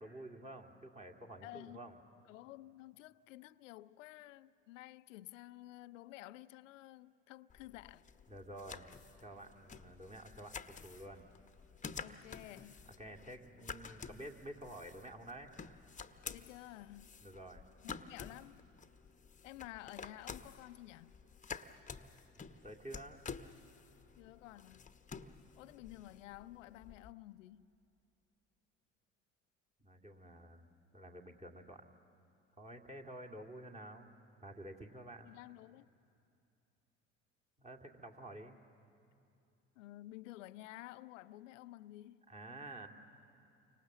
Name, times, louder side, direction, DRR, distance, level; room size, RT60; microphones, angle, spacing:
voice 1, 0.0-2.0 8.3-8.9 9.2-11.3 13.0-15.5 17.2-17.6 22.5-23.2 29.8-30.7 30.9-31.9 32.6-34.1 34.4-35.3 37.6-38.6 42.3-42.9, right 1 dB, 20° right, 2.1 m, -50 dB
voice 2, 1.4-2.0 2.2-8.1 12.0-12.8 16.3-17.2 17.8-18.6 19.4-21.2 21.8-21.9 24.2-25.0 25.6-27.7 35.2-35.9 39.8-42.3, left 16 dB, 75° left, 0.5 m, -52 dB
sound 1, 7.5-27.1, left 5 dB, 20° left, 0.9 m, -51 dB
29.5 x 25.0 x 7.1 m
hypercardioid pair, 60°, 38 cm